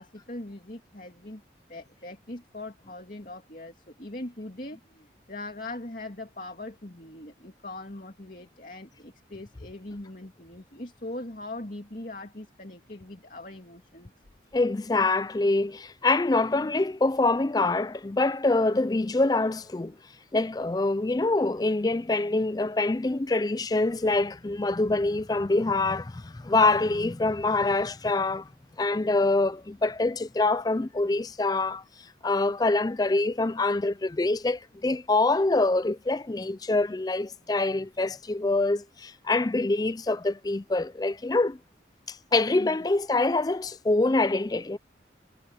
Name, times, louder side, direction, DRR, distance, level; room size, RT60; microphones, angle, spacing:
voice 1, 0.0-1.4 1.7-14.1 42.6-42.8, left 2 dB, 45° left, 2.6 m, -41 dB
voice 2, 14.5-19.9 20.3-28.5 28.8-31.8 32.2-41.6 42.1-44.8, left 2 dB, 20° left, 0.4 m, -25 dB
head